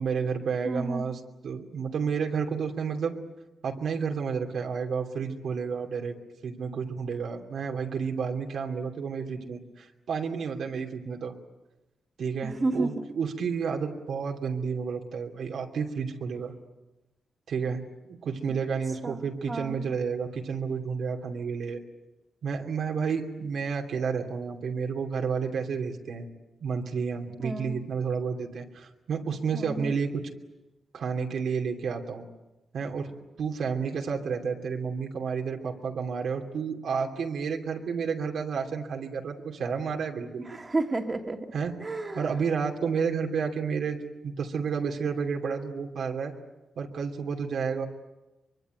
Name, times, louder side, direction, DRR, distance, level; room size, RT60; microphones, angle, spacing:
voice 1, 0.0-3.2 3.6-6.2 6.4-11.3 12.2-16.5 17.5-17.8 18.1-21.8 22.4-26.3 26.6-30.3 30.9-32.3 32.7-33.1 33.4-40.5 41.5-41.7 42.1-46.3 46.8-47.9, right 6 dB, 80° right, 2 dB, 2.8 m, -31 dB
voice 2, 0.7-1.1 12.4-12.9 19.0-19.8 27.4-27.8 29.5-29.9 40.4-41.5 41.8-42.2, right 2 dB, 25° right, 5 dB, 2.1 m, -31 dB
24.0 x 24.0 x 9.2 m, 1.0 s
wide cardioid pair, 130°, 0 cm